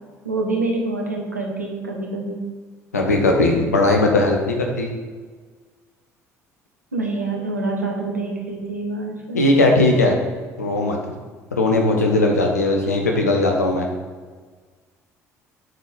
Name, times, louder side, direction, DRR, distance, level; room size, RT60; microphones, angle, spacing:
voice 1, 0.2-2.5 6.9-9.4, right 2 dB, 90° right, 1 dB, 1.0 m, -26 dB
voice 2, 2.9-4.9 9.3-10.2 10.6-11.0 11.5-13.9, left 2 dB, 85° left, 2 dB, 1.0 m, -18 dB
7.7 x 4.4 x 5.0 m, 1.5 s
figure-of-eight pair, 55°, 8 cm